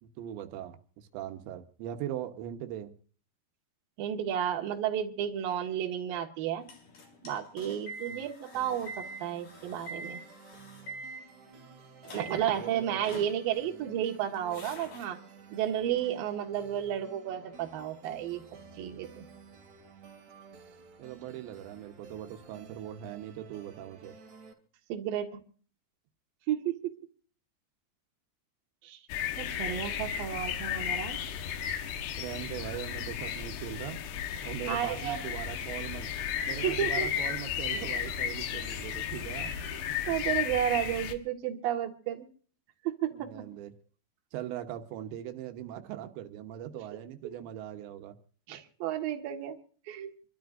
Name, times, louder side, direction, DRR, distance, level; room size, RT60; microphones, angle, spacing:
voice 1, 0.0-2.9 8.1-8.2 12.5-13.0 21.0-24.1 32.1-34.0 34.4-36.1 36.5-39.5 43.1-43.7 44.3-48.2, right 11 dB, 90° right, 7 dB, 3.4 m, -40 dB
voice 2, 4.0-6.7 7.2-10.2 12.1-15.2 15.5-18.4 18.8-19.2 24.9-25.3 26.5-26.9 28.8-29.0 29.4-31.2 34.7-35.2 36.6-37.1 39.7-39.8 40.1-42.3 42.8-43.3 47.2-47.3 48.5-49.6 49.9-50.1, right 10 dB, 65° right, 3 dB, 3.1 m, -32 dB
sound 1, 6.6-11.7 12.0-12.6 13.0-13.8 14.1-15.0 16.0-16.1, right 1 dB, 60° left, 5.6 m, -45 dB
sound 2, 8.5-24.5, right 5 dB, 45° right, 3.7 m, -53 dB
sound 3, 29.1-41.1, left 9 dB, 75° left, 3.3 m, -34 dB
27.5 x 13.0 x 2.5 m, 0.42 s
omnidirectional pair, 4.9 m